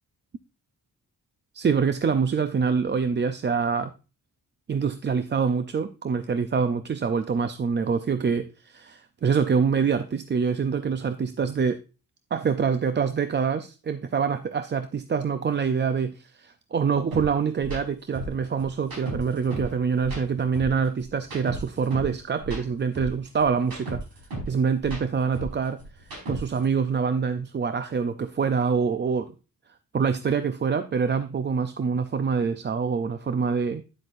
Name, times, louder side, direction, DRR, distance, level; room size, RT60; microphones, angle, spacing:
voice 1, 1.5-3.9 4.7-11.8 12.3-24.0 24.5-25.8 26.3-29.3 29.9-33.8, right 6 dB, 30° right, 10 dB, 0.4 m, -25 dB
sound 1, 17.1-17.2 17.6-17.8 18.1-19.7 20.0-22.1 22.4-24.5 24.8-26.6, right 1 dB, 70° right, 5.0 m, -35 dB
9.7 x 7.9 x 2.5 m, 0.32 s
wide cardioid pair, 150°, 35 cm